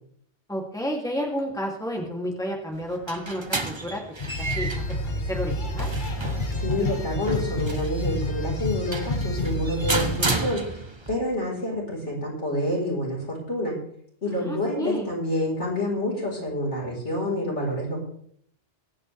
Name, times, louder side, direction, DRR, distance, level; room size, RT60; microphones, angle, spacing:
voice 1, 0.5-4.0 4.4-5.9 14.3-15.1, equal, 5° left, -1 dB, 2.8 m, -31 dB
sound 1, 2.7-11.1, right 3 dB, 25° right, 1.1 m, -33 dB
sound 2, 4.2-10.2, left 1 dB, 45° left, 1.5 m, -29 dB
voice 2, 6.5-10.7 11.1-13.8 14.2-18.0, left 1 dB, 85° left, -3 dB, 5.0 m, -28 dB
22.5 x 8.8 x 3.4 m, 0.65 s
omnidirectional pair, 1.2 m